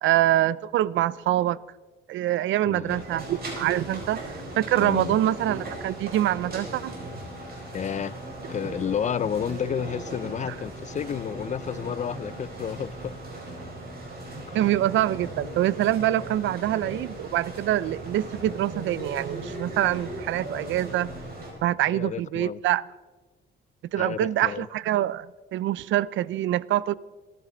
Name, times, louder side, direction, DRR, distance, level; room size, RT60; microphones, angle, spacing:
voice 1, 0.0-1.6 2.1-7.0 10.4-10.5 14.5-21.1 21.6-22.8 23.9-25.3 25.5-26.9, right 13 dB, 75° right, 0.4 m, -25 dB
voice 2, 2.7-3.0 4.8-5.2 7.7-8.2 8.5-13.1 14.5-14.6 21.9-22.6 24.0-24.7, left 8 dB, 40° left, 0.4 m, -31 dB
sound 1, 2.9-21.5, right 1 dB, 50° right, 4.7 m, -38 dB
27.0 x 11.0 x 3.9 m
cardioid pair, 90°, 20 cm